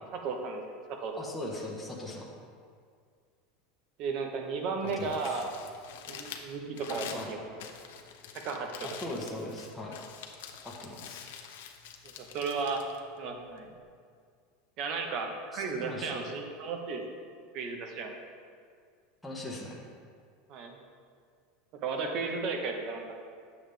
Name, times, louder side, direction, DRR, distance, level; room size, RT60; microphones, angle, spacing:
voice 1, 0.0-1.1 4.0-5.5 6.1-7.6 8.4-8.7 12.0-12.8 13.2-13.7 14.8-17.0 17.5-18.2 20.5-20.8 21.8-23.1, right 4 dB, 45° right, 3 dB, 1.0 m, -34 dB
voice 2, 1.2-2.3 4.8-5.4 7.1-7.3 8.8-10.0 10.6-11.2 15.5-16.1 19.2-19.8, left 1 dB, 5° left, -4 dB, 1.0 m, -40 dB
Crumpling crinkling, 4.7-13.8, left 7 dB, 90° left, 0.8 m, -46 dB
9.1 x 7.2 x 3.4 m, 2.1 s
supercardioid pair, 155°, 0 cm